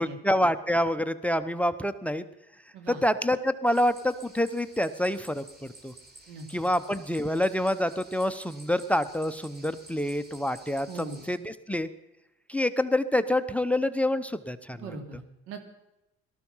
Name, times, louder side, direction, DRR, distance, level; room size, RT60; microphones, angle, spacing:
voice 1, 0.0-2.2 3.0-5.4 5.8-5.9 6.5-11.9 12.5-14.9, left 1 dB, 5° left, 14 dB, 0.9 m, -27 dB
sound 1, 3.7-11.4, right 2 dB, 30° right, 3.7 m, -52 dB
voice 2, 10.9-11.2 14.8-15.2 15.5-15.7, right 4 dB, 90° right, 5 dB, 3.0 m, -40 dB
18.5 x 13.5 x 5.7 m, 0.92 s
supercardioid pair, 90°, 31 cm